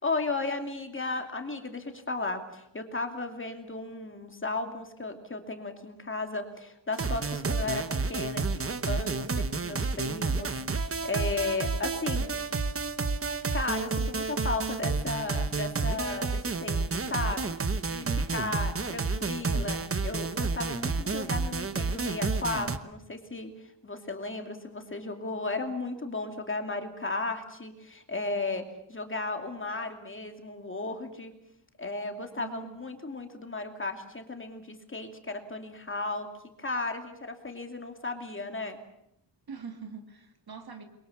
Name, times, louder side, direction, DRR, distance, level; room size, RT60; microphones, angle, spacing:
voice 1, 0.0-7.8 8.1-12.3 13.5-17.6 17.9-23.5 23.8-31.3 31.8-36.3 36.6-38.8, left 3 dB, 25° left, 5 dB, 2.6 m, -35 dB
sound 1, 6.9-22.8, right 4 dB, 30° right, 1.1 m, -30 dB
voice 2, 32.3-32.8 39.5-40.8, right 6 dB, 55° right, 6 dB, 2.9 m, -43 dB
28.5 x 23.0 x 7.2 m, 0.79 s
wide cardioid pair, 180°, 44 cm